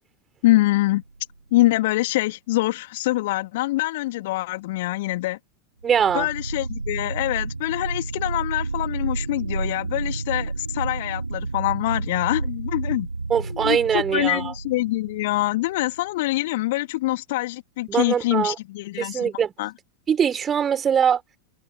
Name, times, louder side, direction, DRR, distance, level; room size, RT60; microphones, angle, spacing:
voice 1, 0.4-1.0 1.5-5.4 6.1-13.1 13.4-19.3 19.6-19.7, left 18 dB, 50° left, 3.0 m, -24 dB
sound 1, 0.9-1.5 5.8-16.0, right 3 dB, 80° right, 4.9 m, -31 dB
voice 2, 5.8-6.3 13.3-14.5 17.9-18.5 19.0-19.5 20.1-21.2, right 8 dB, 20° right, 4.4 m, -22 dB
figure-of-eight pair, 90°, 0 cm